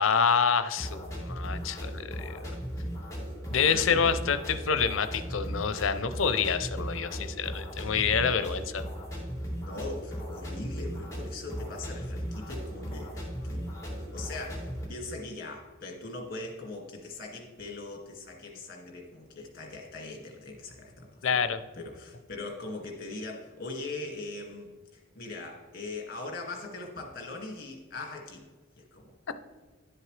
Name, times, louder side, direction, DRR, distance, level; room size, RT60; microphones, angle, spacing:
voice 1, 0.0-2.5 3.5-8.8 21.2-21.6, left 6 dB, 85° left, 11 dB, 0.6 m, -27 dB
sound 1, 0.8-14.8, equal, 15° left, 2.4 m, -37 dB
voice 2, 3.7-4.2 9.6-13.6 14.1-28.4 28.8-29.2, left 2 dB, 50° left, 1 dB, 2.0 m, -41 dB
11.0 x 7.6 x 3.3 m, 1.3 s
head